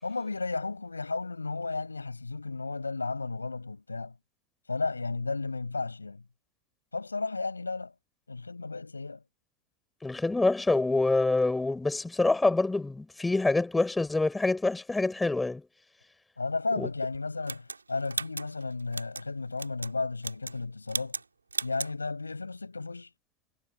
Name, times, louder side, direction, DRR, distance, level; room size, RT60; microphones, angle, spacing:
voice 1, 0.0-4.1 4.7-6.2 6.9-7.9 8.3-9.2 16.4-21.2 21.6-23.1, left 3 dB, 80° left, 6.9 m, -33 dB
voice 2, 10.0-15.6 16.7-16.9, left 2 dB, 10° left, 5.8 m, -26 dB
sound 1, 17.5-19.3 19.6-19.9 20.2-20.6 20.9-21.3 21.5-21.9, right 4 dB, 80° right, 3.5 m, -36 dB
figure-of-eight pair, 90°, 0 cm